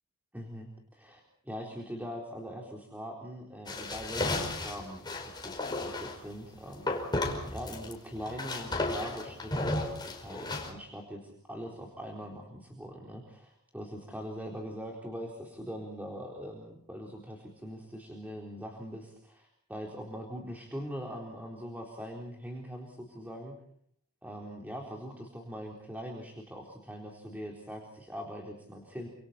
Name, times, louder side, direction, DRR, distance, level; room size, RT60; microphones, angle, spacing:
voice 1, 0.3-7.0 7.5-23.5 24.2-29.1, equal, 10° right, 0 dB, 4.0 m, -42 dB
sound 1, 3.7-6.2 6.9-7.9 8.2-10.7, left 2 dB, 20° left, 5.1 m, -34 dB
29.5 x 27.5 x 4.4 m, 0.65 s
head